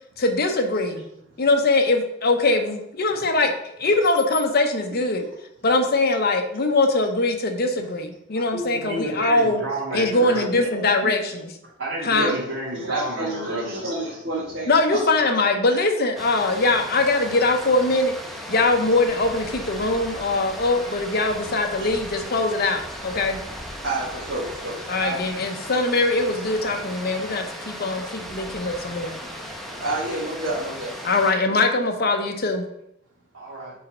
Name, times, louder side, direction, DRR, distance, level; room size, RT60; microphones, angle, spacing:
voice 1, 0.2-1.0 1.4-3.5 3.8-5.2 5.6-9.6 9.9-11.5 12.0-12.3 14.7-18.1 18.5-23.4 24.9-29.2 31.0-32.7, left 2 dB, 55° left, 5 dB, 0.8 m, -22 dB
voice 2, 8.3-10.8 11.8-13.8 33.3-33.7, right 1 dB, 85° right, -9 dB, 1.8 m, -30 dB
voice 3, 12.7-15.3 21.8-21.9 23.8-25.2 28.4-28.5 29.8-31.0, right 2 dB, 65° right, -6 dB, 1.6 m, -29 dB
sound 1, 16.2-31.3, equal, ahead, 0.8 m, -36 dB
4.7 x 4.2 x 5.5 m, 0.81 s
head